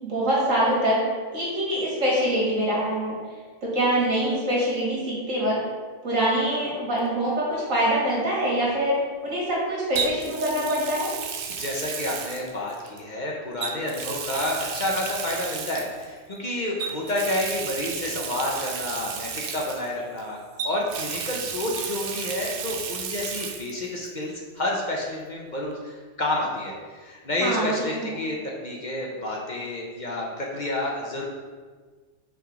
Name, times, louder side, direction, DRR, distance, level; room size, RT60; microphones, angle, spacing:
voice 1, 0.0-1.0 1.3-3.2 3.6-5.6 6.0-11.1 27.4-28.0, right 1 dB, 85° right, -5 dB, 2.2 m, -24 dB
Water tap faucet, 7.0-7.2 10.0-13.0 13.6-16.1 16.8-20.2 20.6-23.7 24.0-24.1 25.7-25.8, right 6 dB, 60° right, 0.6 m, -33 dB
voice 2, 11.5-20.4 20.6-31.3, left 1 dB, 40° left, -2 dB, 0.8 m, -29 dB
5.8 x 3.8 x 4.9 m, 1.5 s
omnidirectional pair, 1.3 m